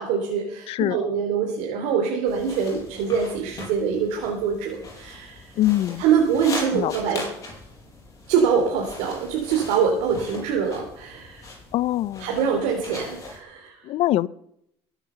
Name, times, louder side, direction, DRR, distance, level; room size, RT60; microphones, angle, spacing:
voice 1, 0.0-5.5 6.0-7.2 8.3-11.4 12.2-13.8, right 6 dB, 85° right, 3.0 m, -24 dB
voice 2, 0.7-1.0 5.6-6.0 6.7-6.9 11.7-12.4 13.8-14.3, left 14 dB, 60° left, 0.6 m, -23 dB
sound 1, 2.3-13.4, left 2 dB, 30° left, 7.4 m, -40 dB
22.5 x 9.1 x 6.8 m
cardioid pair, 125°, 11 cm